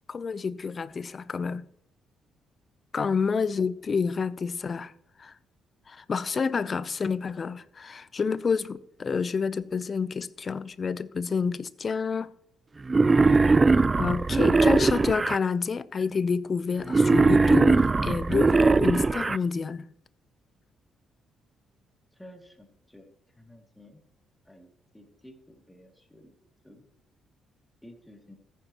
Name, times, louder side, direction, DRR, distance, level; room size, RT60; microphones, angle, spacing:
voice 1, 0.1-1.7 2.9-4.9 5.2-5.3 5.9-12.3 14.0-19.9, left 5 dB, 40° left, 0.6 m, -28 dB
Wild animals, 12.9-15.4 16.9-19.4, right 3 dB, 25° right, 0.3 m, -20 dB
voice 2, 22.2-24.0 24.5-26.3 26.6-26.8 27.8-28.3, left 1 dB, 5° left, 2.5 m, -52 dB
14.5 x 9.2 x 3.0 m
cardioid pair, 90°, 0 cm